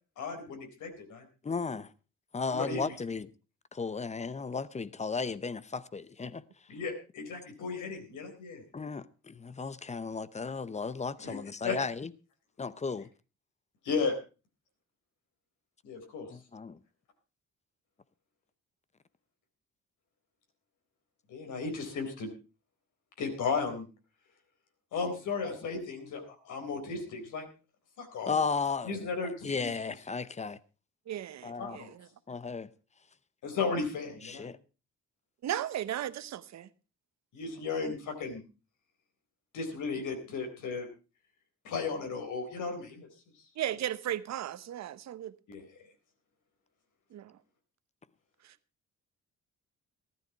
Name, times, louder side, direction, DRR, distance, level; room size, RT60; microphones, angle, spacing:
voice 1, 0.2-1.2 2.5-2.8 6.7-8.6 11.2-11.4 11.6-11.8 13.8-14.1 15.8-16.3 21.3-22.3 23.2-23.9 24.9-27.5 28.0-28.3 28.8-29.7 31.6-31.9 33.4-34.5 37.3-38.4 39.5-40.9 41.6-43.1 45.5-45.6, left 4 dB, 80° left, 4.1 m, -35 dB
voice 2, 1.4-1.9 2.3-3.3 3.7-6.4 8.7-12.1 12.6-13.1 16.3-16.8 28.3-28.9 29.2-30.6 31.4-31.8 32.3-32.7 34.2-34.6, left 5 dB, 25° left, 0.8 m, -35 dB
voice 3, 31.1-32.1 35.4-36.7 43.6-45.3 47.1-47.3 48.4-48.5, right 11 dB, 65° right, 0.9 m, -36 dB
14.0 x 12.0 x 4.6 m
cardioid pair, 90°, 30 cm